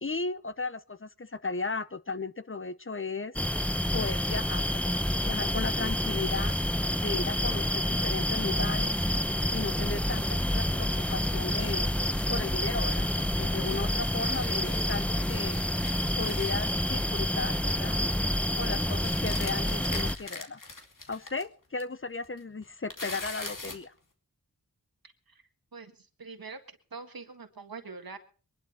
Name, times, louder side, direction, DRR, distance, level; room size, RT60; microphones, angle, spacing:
voice 1, 0.0-3.4 3.9-6.5 7.0-9.0 9.5-11.9 12.3-15.6 16.2-18.0 18.6-20.6 21.1-23.9, left 4 dB, 35° left, 14 dB, 0.8 m, -35 dB
sound 1, 3.3-20.1, equal, 5° left, 0.7 m, -28 dB
sound 2, 10.9-13.3 13.6-17.3 17.5-17.8 18.1-18.4 19.0-21.4 21.8-21.9 22.2-23.9, left 3 dB, 60° left, 2.5 m, -44 dB
voice 2, 25.0-25.4 25.7-28.2, right 4 dB, 75° right, 7 dB, 1.7 m, -44 dB
22.5 x 11.5 x 4.4 m, 0.39 s
wide cardioid pair, 45°, 36 cm